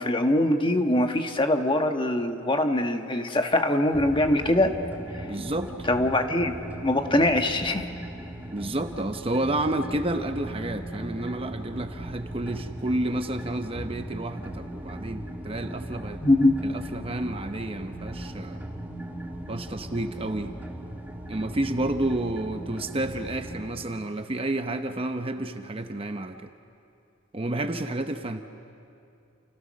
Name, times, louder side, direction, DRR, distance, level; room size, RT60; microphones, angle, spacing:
voice 1, 0.0-4.7 5.2-5.3 5.9-6.5 6.8-7.9 16.2-16.5, left 1 dB, 25° left, 5 dB, 1.4 m, -23 dB
sound 1, 3.9-23.7, right 1 dB, 10° right, 1.6 m, -38 dB
voice 2, 5.2-5.9 8.5-16.2 16.6-18.6 19.5-20.5 21.3-26.5 27.3-28.4, right 1 dB, 25° right, 7 dB, 0.8 m, -30 dB
30.0 x 29.0 x 6.4 m, 2.6 s
head